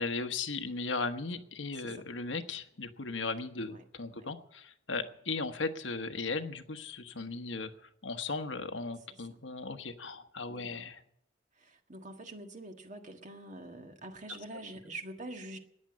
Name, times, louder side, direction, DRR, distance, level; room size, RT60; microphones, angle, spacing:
voice 1, 0.0-11.0, left 3 dB, 85° left, 8 dB, 1.2 m, -37 dB
voice 2, 10.5-10.8 11.6-15.6, right 1 dB, 40° right, 5 dB, 1.6 m, -45 dB
14.0 x 9.9 x 9.6 m, 0.75 s
head